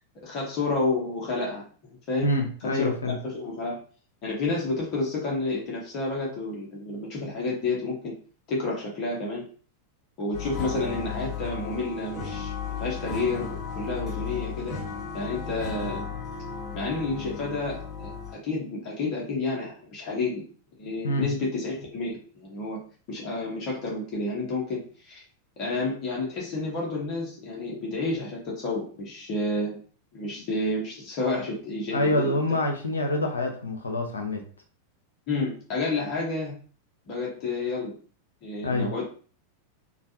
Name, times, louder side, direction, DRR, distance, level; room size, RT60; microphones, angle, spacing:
voice 1, 0.2-1.6 2.1-2.4 2.7-3.8 4.2-8.1 8.5-9.5 10.2-12.5 12.8-14.7 15.1-16.0 16.7-20.4 20.8-22.8 23.1-25.2 25.6-29.8 30.1-32.4 35.3-36.5 37.1-37.9 38.4-39.0, left 2 dB, 40° left, -3 dB, 1.0 m, -30 dB
voice 2, 2.2-3.2 21.0-21.3 31.9-34.4 38.6-38.9, left 1 dB, 75° left, 3 dB, 0.6 m, -26 dB
sound 1, 10.3-18.3, left 6 dB, 15° left, 1.4 m, -35 dB
3.1 x 2.3 x 2.8 m, 0.42 s
figure-of-eight pair, 90°, 0 cm